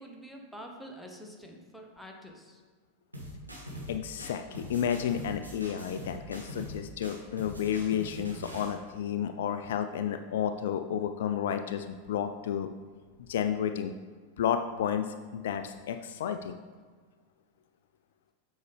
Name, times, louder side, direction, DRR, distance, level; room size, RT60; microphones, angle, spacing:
voice 1, 0.0-2.6, equal, ahead, 1 dB, 1.0 m, -47 dB
sound 1, 3.1-3.9 4.2-6.8 7.0-8.7, equal, 85° right, 1.4 m, -42 dB
voice 2, 3.9-12.7 13.2-13.9 14.4-16.6, left 9 dB, 60° left, 8 dB, 0.3 m, -31 dB
7.9 x 5.3 x 3.4 m, 1.5 s
figure-of-eight pair, 90°, 0 cm